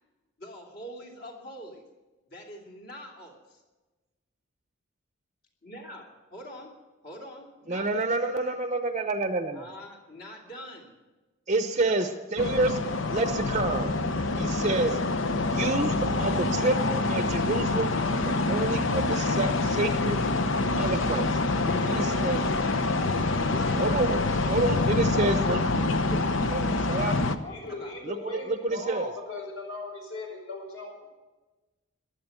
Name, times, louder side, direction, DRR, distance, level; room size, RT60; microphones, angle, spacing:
voice 1, 0.4-1.8 2.3-3.6 5.6-6.8 7.0-8.1 9.5-10.9 11.8-12.1 21.6-23.8 25.1-28.0, left 1 dB, 50° left, 1 dB, 2.9 m, -43 dB
voice 2, 7.7-9.7 11.5-12.8 13.1-13.9 14.4-15.0 15.4-17.9 18.2-20.2 20.8-21.4 21.8-22.4 23.8-25.6 26.1-26.2 26.5-27.2 28.0-29.1, right 2 dB, 35° right, 8 dB, 0.7 m, -28 dB
sound 1, 12.4-27.4, left 3 dB, 65° left, 0.8 m, -26 dB
voice 3, 27.5-31.1, left 2 dB, 80° left, 1 dB, 5.0 m, -38 dB
15.0 x 11.0 x 6.8 m, 1.2 s
head